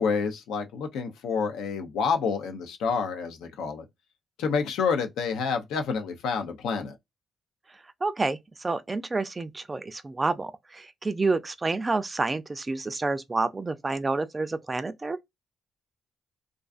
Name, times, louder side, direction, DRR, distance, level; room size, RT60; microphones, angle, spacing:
voice 1, 0.0-3.8 4.4-7.0, left 5 dB, 85° left, 0.5 m, -28 dB
voice 2, 8.0-15.2, right 3 dB, 25° right, 0.3 m, -29 dB
2.4 x 2.3 x 2.3 m
cardioid pair, 90°, 0 cm